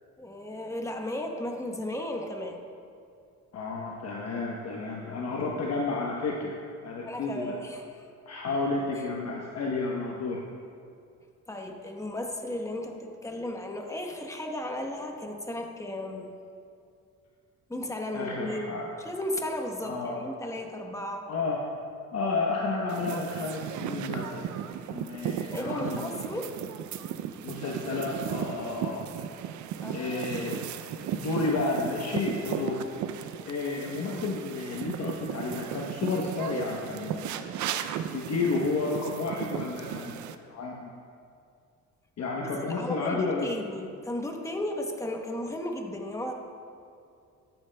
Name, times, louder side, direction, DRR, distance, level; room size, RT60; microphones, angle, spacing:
voice 1, 0.2-2.6 7.0-8.1 11.5-16.3 17.7-21.3 25.5-26.5 29.8-30.3 42.4-46.3, left 1 dB, 10° left, 2 dB, 1.0 m, -35 dB
voice 2, 3.5-6.6 6.8-7.6 8.3-10.4 18.1-18.9 19.8-20.2 21.3-21.6 22.1-24.5 24.9-26.1 27.4-29.1 29.9-30.7 31.1-32.8 33.1-37.5 38.1-40.9 42.2-43.5, left 3 dB, 60° left, -2 dB, 0.9 m, -31 dB
sound 1, 22.9-40.4, right 9 dB, 75° right, 0.5 m, -36 dB
12.5 x 8.9 x 2.2 m, 2.4 s
cardioid pair, 90°, 30 cm